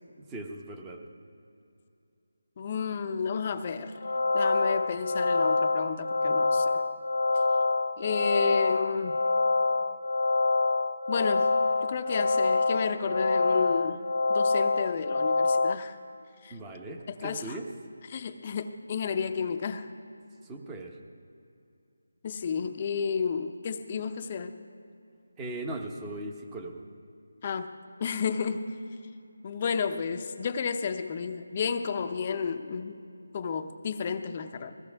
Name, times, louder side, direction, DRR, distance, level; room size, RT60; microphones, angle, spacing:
voice 1, 0.2-1.0 16.5-17.7 20.4-21.0 25.4-26.8, right 2 dB, 10° right, 3 dB, 0.9 m, -39 dB
voice 2, 2.6-3.9 4.3-6.8 8.0-9.2 11.1-11.5 11.8-14.0 14.3-16.0 16.4-16.5 17.2-17.6 18.1-19.9 22.2-24.6 27.4-28.7 29.4-33.0 33.3-34.7, left 6 dB, 30° left, 8 dB, 0.7 m, -32 dB
sound 1, 4.0-15.8, left 3 dB, 75° left, 0.7 m, -26 dB
21.0 x 16.0 x 3.5 m, 2.6 s
figure-of-eight pair, 170°, 0 cm